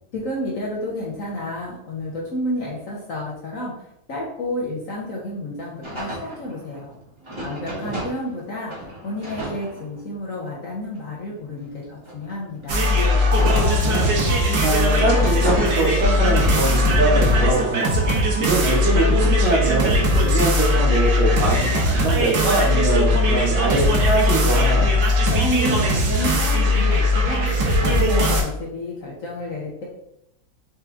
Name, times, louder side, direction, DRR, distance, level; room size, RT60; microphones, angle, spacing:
voice 1, 0.1-6.9 7.4-12.9 25.3-29.9, left 1 dB, 60° left, -4 dB, 0.9 m, -30 dB
sound 1, 5.8-8.4 8.7-10.3 10.9-14.4 14.8-16.4 16.9-19.5, right 1 dB, 15° right, 1.1 m, -35 dB
voice 2, 7.6-8.0 13.6-17.9 18.4-24.9, right 3 dB, 80° right, -2 dB, 2.0 m, -23 dB
sound 2, 12.7-28.4, left 1 dB, 60° right, 1.6 m, -19 dB
4.6 x 3.0 x 3.5 m, 0.80 s
omnidirectional pair, 2.2 m